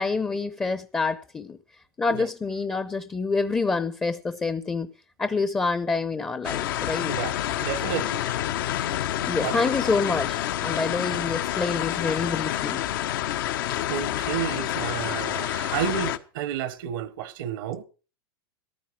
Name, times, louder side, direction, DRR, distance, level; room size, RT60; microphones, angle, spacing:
voice 1, 0.0-1.6 2.0-4.9 5.2-7.1 9.3-12.9, left 4 dB, 15° left, 0.7 m, -27 dB
sound 1, 6.4-16.2, left 12 dB, 65° left, 1.1 m, -28 dB
voice 2, 7.1-8.2 9.4-9.7 13.6-17.8, right 10 dB, 65° right, 1.1 m, -31 dB
14.0 x 12.0 x 4.7 m
hypercardioid pair, 115°, 12 cm